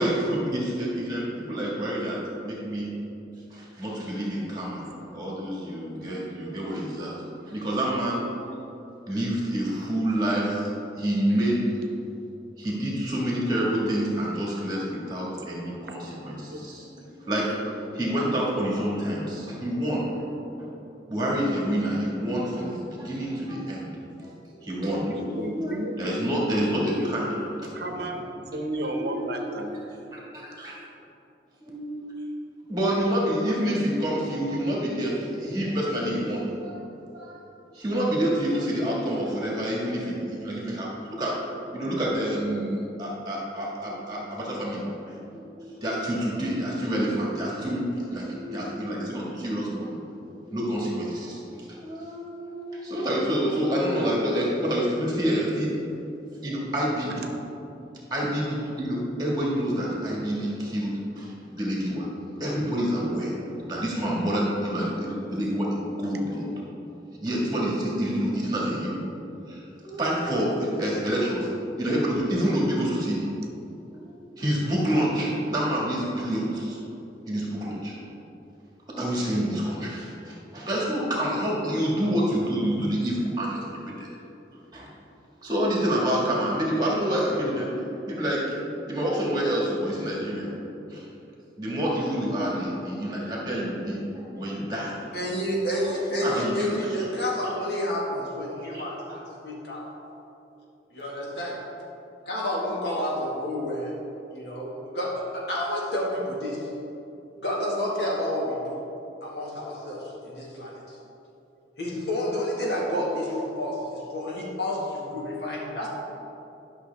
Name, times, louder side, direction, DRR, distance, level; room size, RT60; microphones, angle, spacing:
voice 1, 0.0-2.9 3.5-8.3 9.1-10.7 11.0-11.7 12.6-16.9 17.2-17.6 17.9-20.3 20.6-20.7 21.1-23.9 24.2-27.3 27.6-28.0 28.9-29.3 29.7-29.8 30.1-30.7 31.6-32.0 32.7-36.9 37.1-37.4 37.7-40.9 41.2-41.4 41.7-44.9 45.3-51.4 51.8-55.7 56.4-57.3 58.1-62.1 62.4-66.5 66.9-67.0 67.2-69.1 69.5-71.5 71.8-73.3 73.9-76.8 77.3-78.0 78.9-84.1 84.7-84.9 85.4-88.6 88.9-90.5 90.9-91.0 91.6-95.0 95.8-96.7 98.7-98.8, equal, 25° right, -4 dB, 1.7 m, -28 dB
voice 2, 24.8-26.3 26.9-27.4 27.7-29.8 49.7-49.8 91.0-91.1, right 1 dB, 70° right, 4 dB, 0.8 m, -33 dB
voice 3, 95.1-99.9 100.9-101.6 102.3-104.0 104.3-106.7 107.4-108.8 109.2-111.0 111.8-115.9, left 1 dB, 70° left, -4 dB, 1.8 m, -30 dB
11.5 x 6.0 x 3.4 m, 2.9 s
head